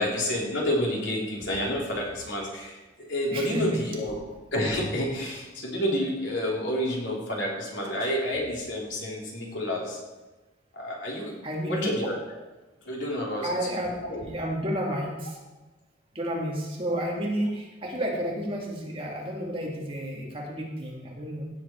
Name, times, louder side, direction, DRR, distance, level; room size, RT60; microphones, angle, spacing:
voice 1, 0.0-4.2 4.5-10.0 10.7-11.3 11.6-12.2 12.8-13.5 14.1-14.2, left 1 dB, 70° left, -3 dB, 3.5 m, -29 dB
voice 2, 3.3-3.8 11.4-11.9 13.4-15.4 16.1-21.5, equal, 30° right, -2 dB, 2.1 m, -31 dB
16.5 x 8.0 x 4.5 m, 1.1 s
head